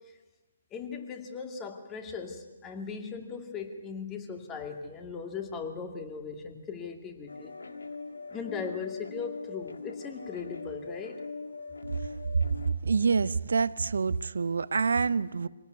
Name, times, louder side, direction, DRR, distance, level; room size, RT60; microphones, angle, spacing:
voice 1, 0.7-7.5 8.3-11.2, left 5 dB, 20° left, 5 dB, 2.3 m, -38 dB
sound 1, 7.3-12.7, left 4 dB, 80° left, 1.8 m, -41 dB
voice 2, 12.8-15.5, right 5 dB, 70° right, 18 dB, 0.7 m, -27 dB
24.0 x 18.0 x 9.5 m, 1.2 s
figure-of-eight pair, 140°, 0 cm